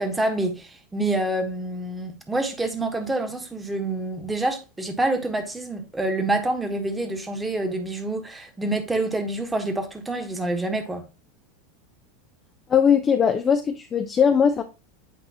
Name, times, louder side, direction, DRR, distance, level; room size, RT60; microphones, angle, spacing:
voice 1, 0.0-11.0, right 2 dB, 10° right, 1.4 m, -27 dB
voice 2, 12.7-14.6, left 7 dB, 25° left, 0.6 m, -19 dB
8.5 x 4.8 x 2.9 m
figure-of-eight pair, 85°, 0 cm